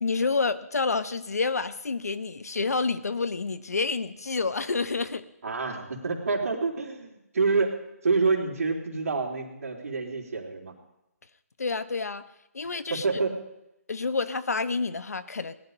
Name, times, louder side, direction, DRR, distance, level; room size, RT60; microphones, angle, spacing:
voice 1, 0.0-5.2 11.6-12.2 12.5-13.0 13.9-15.5, left 4 dB, 75° left, 13 dB, 1.0 m, -28 dB
voice 2, 5.4-7.8 8.0-10.7 12.9-13.3, right 4 dB, 60° right, 0 dB, 3.5 m, -27 dB
18.5 x 11.5 x 5.3 m, 0.86 s
figure-of-eight pair, 150°, 9 cm